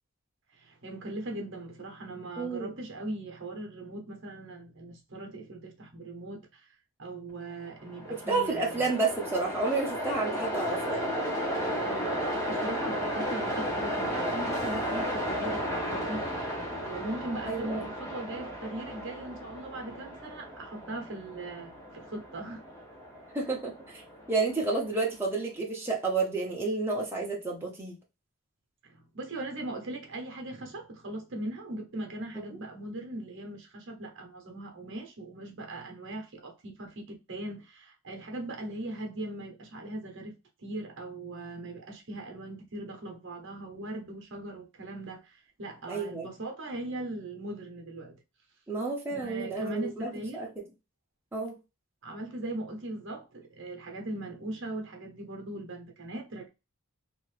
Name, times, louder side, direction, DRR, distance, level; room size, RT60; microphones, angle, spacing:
voice 1, 0.5-6.7 7.0-8.9 11.8-16.3 16.8-22.6 28.8-48.2 49.1-50.4 52.0-56.5, right 2 dB, 55° right, 0.8 m, -39 dB
voice 2, 2.4-2.7 8.1-11.1 17.5-17.9 23.3-24.0 24.3-28.0 32.5-32.6 45.9-46.3 48.7-50.5 51.3-51.6, right 3 dB, 10° right, 0.7 m, -30 dB
Train, 7.8-25.0, equal, 15° left, 0.9 m, -34 dB
2.8 x 2.6 x 3.1 m
head